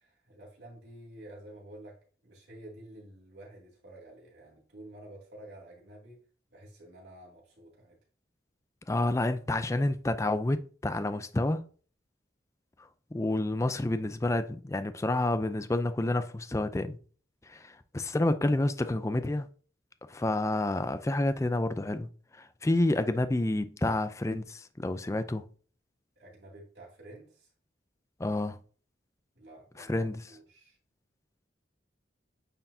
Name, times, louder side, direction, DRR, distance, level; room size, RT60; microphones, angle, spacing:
voice 1, 0.0-6.2 6.5-8.0 26.2-27.5 29.3-30.8, right 1 dB, 65° right, 2.5 m, -50 dB
voice 2, 8.9-11.6 13.1-17.0 17.5-19.5 20.1-25.4 28.2-28.6 29.8-30.2, left 2 dB, 15° left, 0.4 m, -29 dB
8.8 x 4.5 x 2.7 m
head